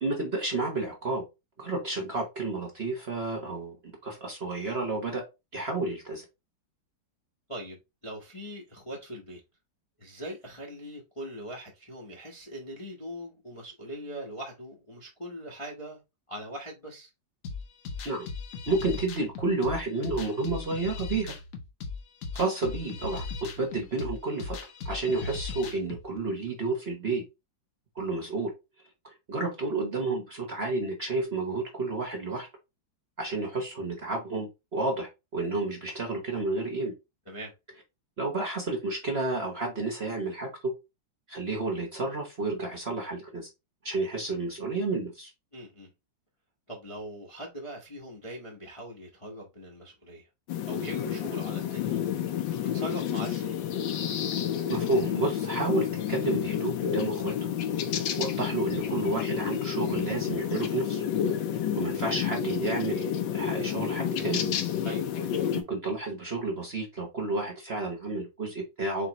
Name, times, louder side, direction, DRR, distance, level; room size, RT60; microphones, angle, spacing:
voice 1, 0.0-1.2 1.6-5.2 5.5-6.2 18.0-18.3 18.7-21.4 22.3-24.6 24.8-27.2 27.9-28.5 29.0-32.5 33.2-36.9 38.2-40.7 41.3-43.5 43.8-45.3 54.7-57.3 57.9-61.0 61.7-63.1 63.3-64.4 65.5-69.1, right 2 dB, 40° right, 1.0 m, -31 dB
voice 2, 8.0-9.4 10.0-16.0 16.3-17.1 37.3-37.5 45.5-45.9 46.7-50.3 50.6-52.0 52.7-53.6 64.8-65.0, equal, 25° left, 0.7 m, -41 dB
sound 1, 17.4-26.0, left 4 dB, 55° left, 1.0 m, -38 dB
sound 2, 50.5-65.6, left 9 dB, 80° left, 1.4 m, -30 dB
4.2 x 3.8 x 2.9 m
omnidirectional pair, 2.1 m